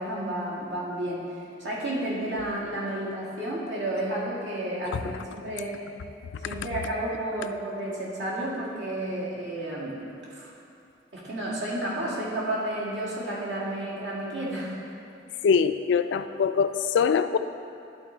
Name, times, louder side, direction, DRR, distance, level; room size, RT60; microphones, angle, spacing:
voice 1, 0.0-5.8 6.4-10.0 10.3-10.5 11.1-14.8, right 1 dB, 80° right, -6 dB, 1.9 m, -31 dB
voice 2, 15.4-17.4, left 6 dB, 70° left, 11 dB, 0.3 m, -23 dB
11.5 x 3.9 x 4.4 m, 2.6 s
head